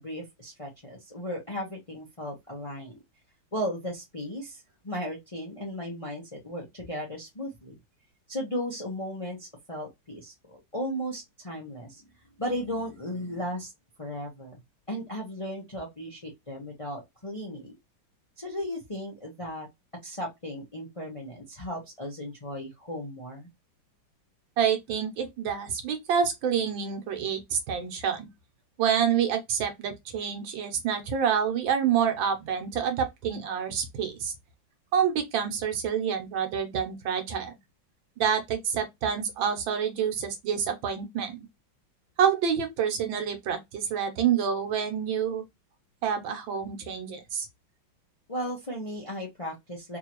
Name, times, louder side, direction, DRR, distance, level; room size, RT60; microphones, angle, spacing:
voice 1, 0.0-3.0 3.5-7.7 8.3-12.0 12.4-13.7 14.0-14.6 14.9-17.7 18.4-19.7 20.0-23.5 48.3-50.0, equal, 25° left, 0.7 m, -36 dB
voice 2, 24.6-28.3 28.8-34.3 34.9-37.6 38.2-41.4 42.2-45.4 46.0-47.5, right 8 dB, 75° right, 1.6 m, -27 dB
3.7 x 2.9 x 2.9 m
omnidirectional pair, 2.1 m